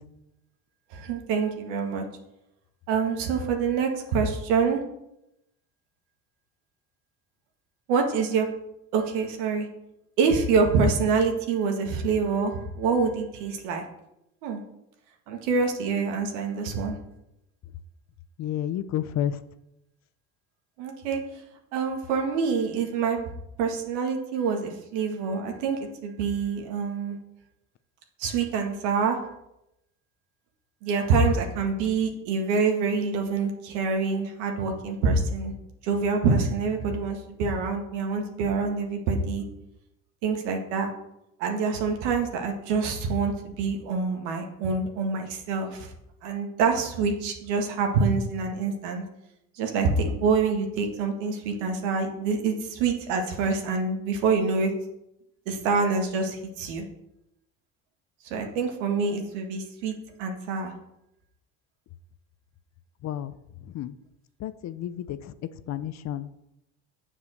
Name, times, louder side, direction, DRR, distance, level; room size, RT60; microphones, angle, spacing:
voice 1, 0.9-2.1 2.9-4.8 7.9-8.5 8.9-9.7 10.2-13.8 14.4-14.6 15.3-17.0 20.8-21.2 21.7-23.2 23.6-27.2 28.2-29.2 30.8-35.5 35.8-39.4 40.2-40.9 41.4-45.9 46.2-49.0 49.6-54.7 55.5-56.9 58.3-60.7, right 4 dB, 80° right, 3 dB, 1.9 m, -26 dB
voice 2, 18.4-19.4 63.0-63.3 63.7-64.0 64.4-65.3 65.7-66.3, left 11 dB, 45° left, 13 dB, 0.7 m, -31 dB
7.3 x 7.0 x 6.5 m, 0.85 s
supercardioid pair, 95°, 37 cm